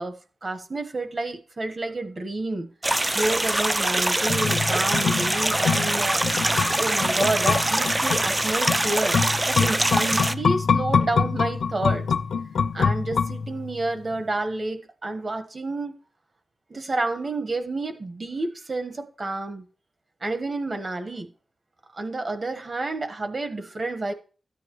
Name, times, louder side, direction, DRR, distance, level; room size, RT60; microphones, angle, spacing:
voice 1, 0.0-2.7 3.0-12.0 12.7-15.9 16.7-19.7 20.2-21.3 21.9-24.1, right 2 dB, 30° right, 1.1 m, -29 dB
sound 1, 2.8-10.3, right 1 dB, 15° right, 0.4 m, -24 dB
sound 2, 4.3-13.8 14.1-14.2, left 6 dB, 80° left, 0.5 m, -25 dB
13.5 x 9.6 x 3.0 m
wide cardioid pair, 175°, 0 cm